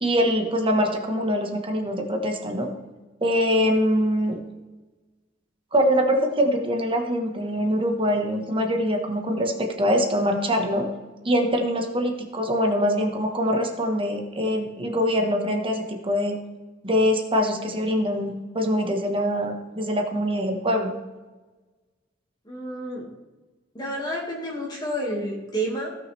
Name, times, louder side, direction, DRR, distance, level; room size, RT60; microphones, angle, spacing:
voice 1, 0.0-2.7 3.2-4.4 5.7-10.9 11.2-16.4 16.8-21.0, equal, 30° right, 3 dB, 1.4 m, -23 dB
voice 2, 22.5-23.1 23.7-25.9, right 1 dB, 20° left, -3 dB, 2.1 m, -30 dB
16.5 x 6.2 x 3.4 m, 1.2 s
head